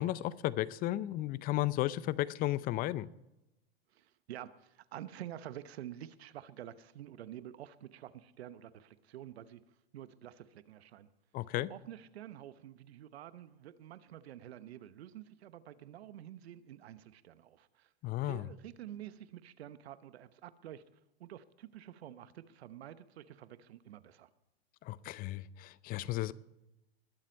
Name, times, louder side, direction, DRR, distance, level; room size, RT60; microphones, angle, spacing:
voice 1, 0.0-3.1 11.3-11.7 18.0-18.5 24.8-26.3, left 15 dB, 30° left, 0.5 m, -34 dB
voice 2, 3.9-9.6 9.9-11.1 11.7-17.9 18.2-20.8 21.2-24.3, right 11 dB, 75° right, 1.0 m, -49 dB
21.0 x 7.4 x 5.3 m
hypercardioid pair, 115°, 32 cm